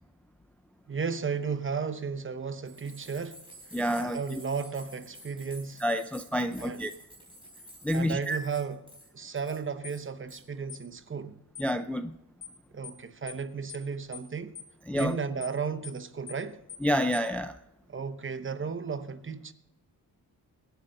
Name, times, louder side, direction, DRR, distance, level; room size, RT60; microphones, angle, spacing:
voice 1, 0.9-3.4 4.0-5.8 6.6-6.8 7.9-8.8 9.1-11.4 12.7-14.5 14.9-16.6 17.9-19.5, right 5 dB, 35° right, 0.8 m, -34 dB
sound 1, 2.6-9.1 9.4-9.6 9.9-10.4, right 1 dB, 15° right, 4.0 m, -51 dB
voice 2, 3.7-4.4 5.8-6.9 7.8-8.4 11.6-12.1 14.9-15.2 16.8-17.5, equal, 5° left, 0.4 m, -28 dB
sound 2, 9.8-10.0 10.7-10.9 11.6-11.7 12.4-12.6 12.8-13.0 13.3-13.4 13.7-13.9 14.1-14.3 14.6-14.7 15.0-15.1 15.4-15.6 15.8-16.0 16.3-16.4 16.7-16.9 17.1-17.3, left 9 dB, 55° left, 1.5 m, -44 dB
23.5 x 8.2 x 3.8 m
wide cardioid pair, 130°, 36 cm